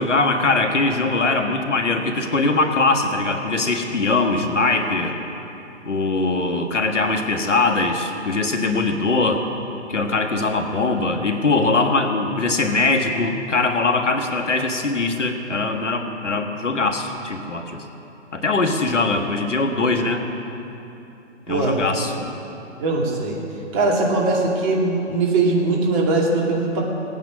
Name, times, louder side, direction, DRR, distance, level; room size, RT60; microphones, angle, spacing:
voice 1, 0.0-5.1 5.8-9.4 9.9-17.8 18.3-20.2 21.5-22.1, left 3 dB, 80° left, 5 dB, 1.6 m, -21 dB
voice 2, 21.5-21.8 22.8-23.4 23.7-26.8, right 3 dB, 30° right, -2 dB, 2.4 m, -20 dB
18.0 x 9.3 x 6.2 m, 2.8 s
figure-of-eight pair, 130°, 36 cm